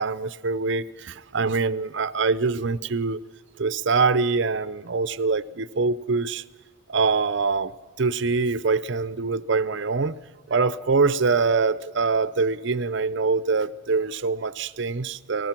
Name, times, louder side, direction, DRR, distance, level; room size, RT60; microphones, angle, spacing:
voice 1, 0.0-3.2 3.6-6.4 6.9-10.2 10.5-15.5, right 4 dB, 60° right, 0.7 m, -24 dB
29.0 x 19.0 x 6.0 m
head